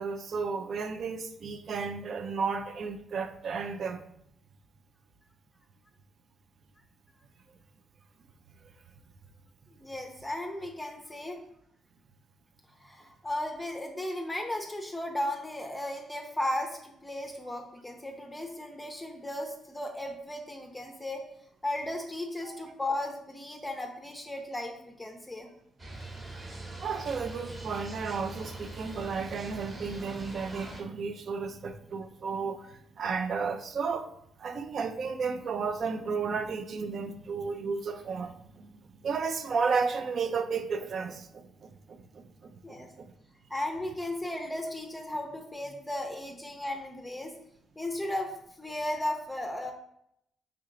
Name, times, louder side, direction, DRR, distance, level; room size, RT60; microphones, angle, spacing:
voice 1, 0.0-4.0 22.4-22.7 26.8-34.1 34.4-38.7 39.0-43.1, right 5 dB, 55° right, 0.4 m, -33 dB
voice 2, 9.7-11.4 12.8-21.2 21.6-25.5 42.6-42.9 43.5-47.3 47.8-49.7, left 1 dB, 15° left, 0.5 m, -35 dB
sound 1, 25.8-30.8, right 2 dB, 30° right, 0.9 m, -42 dB
3.3 x 2.8 x 3.7 m
cardioid pair, 70°, 0 cm